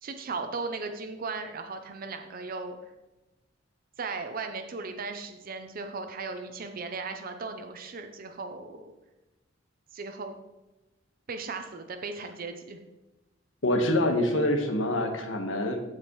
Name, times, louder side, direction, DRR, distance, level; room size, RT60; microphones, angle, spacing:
voice 1, 0.0-2.8 4.0-8.9 9.9-10.4 11.3-12.8, right 4 dB, 50° right, 6 dB, 0.6 m, -37 dB
voice 2, 13.6-15.8, left 1 dB, 85° left, 5 dB, 1.3 m, -26 dB
15.0 x 5.0 x 3.1 m, 1.1 s
head